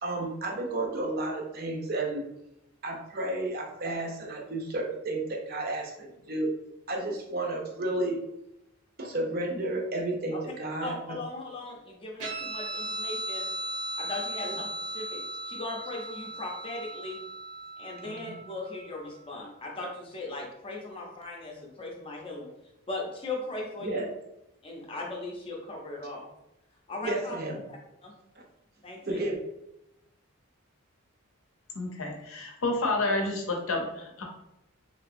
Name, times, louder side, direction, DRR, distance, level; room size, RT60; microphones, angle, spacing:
voice 1, 0.0-2.2 2.8-6.5 6.9-8.2 9.0-10.9 18.0-18.4 23.8-24.1 27.0-27.6 29.0-29.4, right 2 dB, 45° right, 0 dB, 0.6 m, -32 dB
voice 2, 10.8-13.5 14.0-17.2 17.8-22.5 22.9-24.1 24.6-26.3 26.9-27.4 27.7-28.1 28.8-29.3, left 2 dB, 25° left, -1 dB, 0.6 m, -38 dB
Guitar, 12.2-19.1, right 2 dB, 80° right, 0.9 m, -37 dB
voice 3, 31.7-34.2, left 2 dB, 70° left, 1 dB, 0.6 m, -29 dB
3.2 x 2.8 x 2.5 m, 0.87 s
head